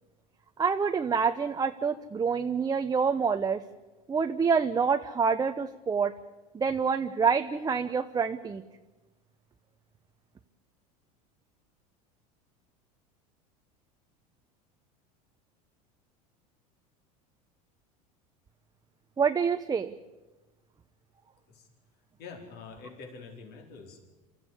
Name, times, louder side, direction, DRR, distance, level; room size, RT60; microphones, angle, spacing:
voice 1, 0.6-3.6 4.1-6.1 6.5-8.6 19.2-19.9, right 5 dB, 20° right, 7 dB, 0.8 m, -27 dB
voice 2, 22.2-24.1, left 4 dB, 55° left, 3 dB, 4.5 m, -46 dB
25.0 x 14.5 x 9.8 m, 1.1 s
hypercardioid pair, 90°, 19 cm